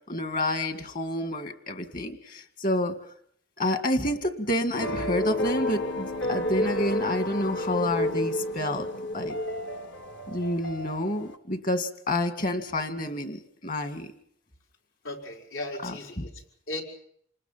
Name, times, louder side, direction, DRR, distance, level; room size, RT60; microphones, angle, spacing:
voice 1, 0.1-2.9 3.6-8.9 9.1-9.4 10.3-14.1 15.8-16.2, left 1 dB, 45° left, 7 dB, 2.1 m, -29 dB
sound 1, 4.7-11.4, left 1 dB, 60° left, 1.5 m, -31 dB
voice 2, 15.0-16.8, left 2 dB, 80° left, 0 dB, 4.9 m, -37 dB
27.5 x 20.0 x 5.8 m, 0.67 s
head